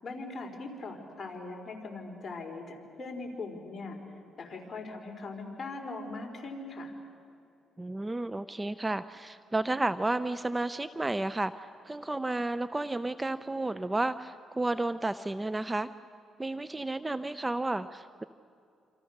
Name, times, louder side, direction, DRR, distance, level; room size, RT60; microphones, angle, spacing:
voice 1, 0.0-4.0 4.4-6.9, left 3 dB, 30° left, 1 dB, 4.5 m, -40 dB
voice 2, 7.8-11.5 11.8-15.9 16.4-18.2, right 2 dB, 15° right, 13 dB, 0.5 m, -32 dB
27.5 x 27.0 x 6.6 m, 2.5 s
cardioid pair, 90°, 0 cm